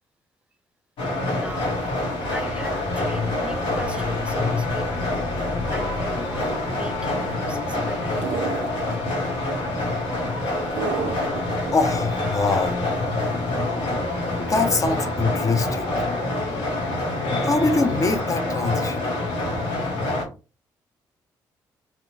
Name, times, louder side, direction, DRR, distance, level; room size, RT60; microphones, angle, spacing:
sound 1, 1.0-20.2, left 2 dB, 70° left, 0.9 m, -26 dB
voice 1, 1.3-1.7 2.3-5.3 5.7-8.2, right 1 dB, 10° right, 0.6 m, -39 dB
sound 2, 8.2-9.1 10.8-11.7, right 7 dB, 65° right, 0.4 m, -29 dB
voice 2, 11.7-12.9 14.4-16.1 17.4-19.1, left 3 dB, 35° left, 0.6 m, -24 dB
2.9 x 2.1 x 2.6 m
hypercardioid pair, 50°, 10 cm